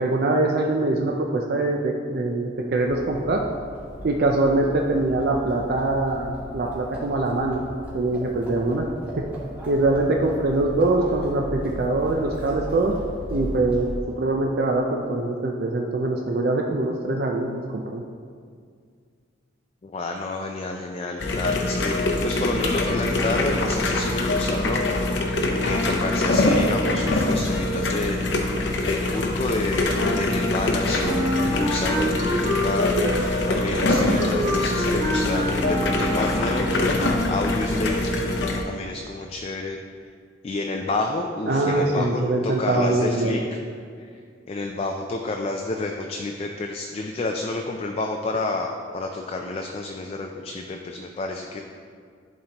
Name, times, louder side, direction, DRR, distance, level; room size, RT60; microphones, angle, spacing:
voice 1, 0.0-3.4 4.0-7.6 7.9-8.9 9.1-9.2 9.7-12.9 13.3-13.9 14.2-18.0 41.5-43.4, right 2 dB, 55° right, 1 dB, 0.4 m, -23 dB
Livestock farm animals working animals, 2.6-14.2, equal, 10° right, 1.4 m, -37 dB
voice 2, 19.8-24.8 25.6-28.4 28.8-37.0 37.3-38.1 38.6-39.8 40.4-43.4 44.0-44.2 44.5-51.6, left 2 dB, 35° left, 3 dB, 0.3 m, -29 dB
sound 1, 21.2-38.6, left 2 dB, 75° left, 0.7 m, -24 dB
Wind instrument woodwind instrument, 31.0-36.7, equal, 40° right, 1.1 m, -27 dB
11.0 x 4.2 x 2.9 m, 2.2 s
head